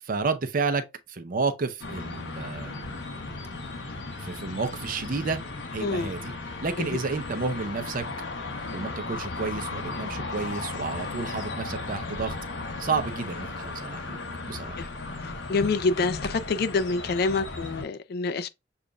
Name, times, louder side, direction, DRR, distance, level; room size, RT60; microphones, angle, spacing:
voice 1, 0.0-2.9 4.2-5.4 5.7-6.3 6.6-8.1 8.7-12.4 12.8-14.2 14.5-14.9, right 4 dB, 50° right, 0.6 m, -31 dB
sound 1, 1.8-17.8, left 3 dB, 70° left, 0.9 m, -36 dB
voice 2, 5.8-6.1 6.8-6.9 14.8-14.9 15.2-18.5, left 4 dB, 55° left, 0.4 m, -27 dB
6.8 x 2.5 x 2.2 m
head